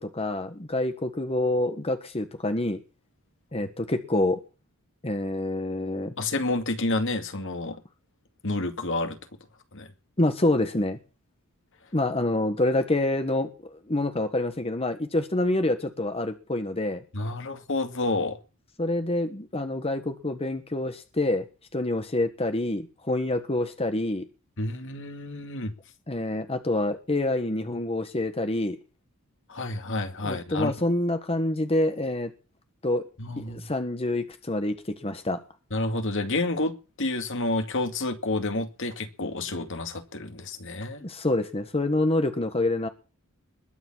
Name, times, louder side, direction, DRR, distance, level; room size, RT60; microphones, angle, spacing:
voice 1, 0.0-2.8 3.5-4.4 5.0-6.1 10.2-11.0 11.9-17.0 18.8-21.5 21.7-24.3 26.1-28.8 30.2-32.3 32.8-33.1 33.4-35.4 41.0-42.9, left 1 dB, 25° left, 1.4 m, -27 dB
voice 2, 6.2-7.8 8.4-9.2 9.7-9.9 17.1-18.4 24.6-25.7 29.5-30.7 33.2-33.7 35.7-41.0, left 2 dB, 60° left, 2.2 m, -29 dB
21.0 x 7.2 x 7.3 m
head